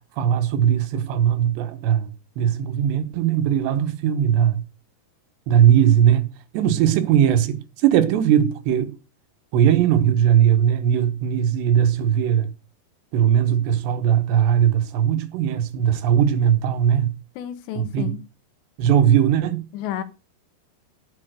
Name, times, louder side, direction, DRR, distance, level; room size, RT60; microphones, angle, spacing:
voice 1, 0.2-4.6 5.5-9.0 9.5-12.5 13.1-17.2 17.8-18.1 18.8-19.6, right 9 dB, 80° right, 3.3 m, -19 dB
voice 2, 17.4-18.2 19.7-20.0, left 10 dB, 80° left, 3.2 m, -31 dB
11.0 x 7.1 x 6.6 m
omnidirectional pair, 5.0 m